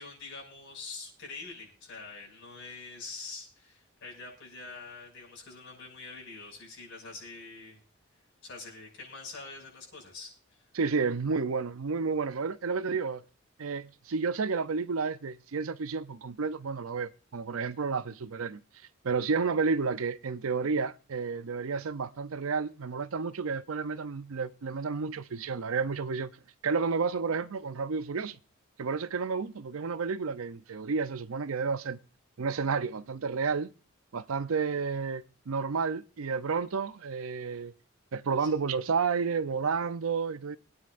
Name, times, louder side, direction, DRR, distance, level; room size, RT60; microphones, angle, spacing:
voice 1, 0.0-7.8 8.4-10.6 38.4-38.5, left 4 dB, 60° left, 6.1 m, -45 dB
voice 2, 10.7-13.2 13.6-18.6 19.0-26.3 26.6-28.4 28.8-32.0 32.4-33.7 34.1-37.7 38.1-40.6, right 5 dB, 80° right, 0.6 m, -31 dB
24.5 x 9.6 x 2.5 m
head